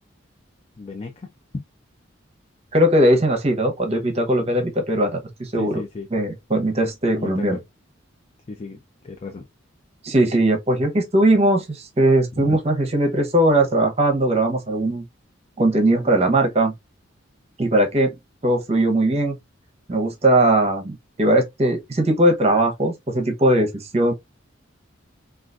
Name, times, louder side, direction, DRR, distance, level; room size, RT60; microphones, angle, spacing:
voice 1, 0.8-1.3 4.4-4.5 5.5-6.1 7.2-7.6 8.5-9.5 12.3-12.6, left 3 dB, 30° left, 0.4 m, -34 dB
voice 2, 2.7-5.8 6.1-7.6 10.0-15.0 15.6-16.7 17.6-18.1 18.4-19.4 19.9-24.1, right 1 dB, 35° right, 0.8 m, -19 dB
3.8 x 2.4 x 2.3 m
head